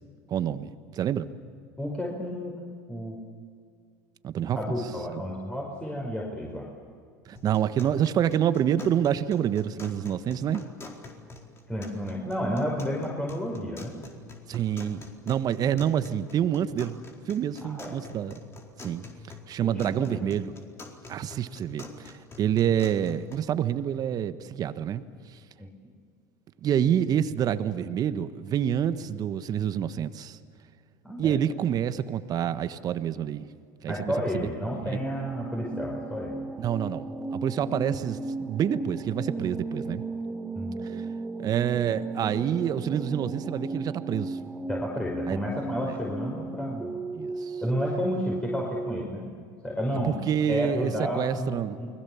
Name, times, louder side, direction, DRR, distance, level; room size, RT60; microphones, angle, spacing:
voice 1, 0.3-1.3 4.2-4.8 7.3-10.6 14.5-17.0 17.3-18.3 18.8-19.0 19.5-20.5 21.1-25.0 26.6-30.4 31.2-33.5 33.8-34.0 34.3-34.5 34.8-35.0 36.6-40.0 40.9-41.0 41.4-44.4 45.3-45.4 47.1-47.6 50.0-51.8, right 9 dB, 45° right, 12 dB, 1.4 m, -27 dB
voice 2, 1.8-2.5 2.9-3.2 4.5-6.7 11.7-13.9 17.7-18.0 19.6-20.2 25.6-25.7 31.0-31.4 33.9-36.4 40.5-40.9 44.7-47.0 47.6-49.3 49.6-50.2 50.5-51.9, equal, 10° left, -2 dB, 5.4 m, -31 dB
sound 1, 7.4-23.4, left 3 dB, 30° left, 4.4 m, -47 dB
sound 2, 35.0-49.0, right 3 dB, 15° right, 1.5 m, -35 dB
29.0 x 21.0 x 7.3 m, 2.2 s
hypercardioid pair, 85°, 9 cm